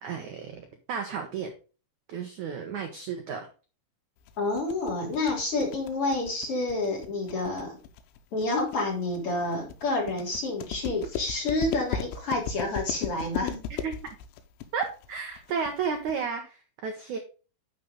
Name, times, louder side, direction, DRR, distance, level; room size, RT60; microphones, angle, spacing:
voice 1, 0.0-1.5 2.1-3.5 13.8-13.9 14.7-17.2, right 6 dB, 80° right, 5 dB, 1.7 m, -33 dB
sound 1, 4.3-16.2, left 8 dB, 85° left, 3.2 m, -36 dB
voice 2, 4.4-7.8 8.3-13.6, left 2 dB, 35° left, -2 dB, 4.0 m, -29 dB
10.5 x 5.5 x 3.8 m, 0.35 s
omnidirectional pair, 5.1 m